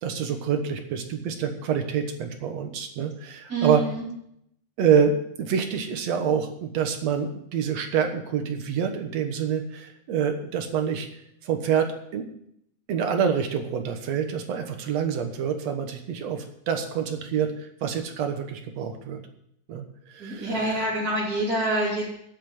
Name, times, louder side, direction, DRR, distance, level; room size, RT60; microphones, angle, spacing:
voice 1, 0.0-3.8 4.8-11.1 11.4-12.2 12.9-19.2 19.7-20.8, right 7 dB, 60° right, 6 dB, 2.3 m, -27 dB
voice 2, 3.5-4.0 20.2-22.1, right 2 dB, 30° right, -8 dB, 3.2 m, -26 dB
9.5 x 8.4 x 7.8 m, 0.74 s
omnidirectional pair, 3.6 m